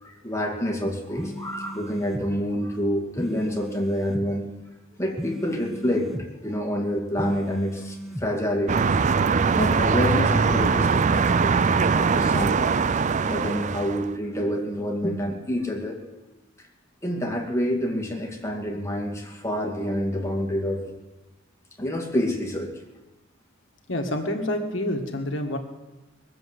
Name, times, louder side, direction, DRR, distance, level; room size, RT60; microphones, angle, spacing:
voice 1, 0.0-4.4 5.0-8.9 9.6-12.6 13.3-16.0 16.6-16.7 17.0-20.8 21.8-22.7, equal, 15° left, 0 dB, 2.3 m, -28 dB
sound 1, 1.2-2.3 3.2-4.3 5.2-6.3 7.2-8.3, equal, ahead, 0.7 m, -36 dB
sound 2, 8.7-14.1, right 5 dB, 35° right, 0.4 m, -21 dB
voice 2, 23.9-25.6, left 1 dB, 70° left, 3 dB, 1.8 m, -27 dB
21.5 x 7.8 x 7.8 m, 1.1 s
head